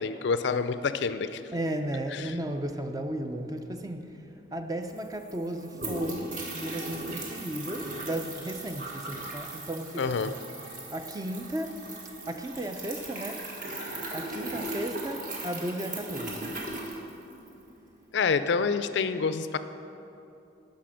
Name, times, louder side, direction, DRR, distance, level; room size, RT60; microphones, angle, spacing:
voice 1, 0.0-1.4 2.1-2.3 10.0-10.3 18.1-19.6, left 5 dB, 65° left, 12 dB, 0.4 m, -27 dB
voice 2, 1.5-10.3 10.9-11.8 12.3-13.5 14.1-16.6, right 1 dB, 20° right, 6 dB, 0.4 m, -35 dB
sound 1, 4.6-4.7 4.8-17.6, right 2 dB, 45° right, 1.4 m, -38 dB
10.0 x 5.8 x 6.3 m, 2.8 s
head